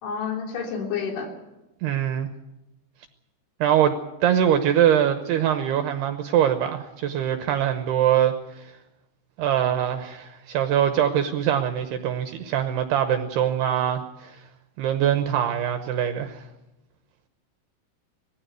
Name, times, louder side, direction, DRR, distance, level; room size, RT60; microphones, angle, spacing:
voice 1, 0.0-1.3, left 6 dB, 70° left, 1 dB, 5.7 m, -29 dB
voice 2, 1.8-2.3 3.6-4.0 4.2-8.7 9.4-14.4 14.8-16.4, right 10 dB, 75° right, 7 dB, 2.5 m, -23 dB
19.5 x 15.5 x 9.4 m, 0.97 s
omnidirectional pair, 5.6 m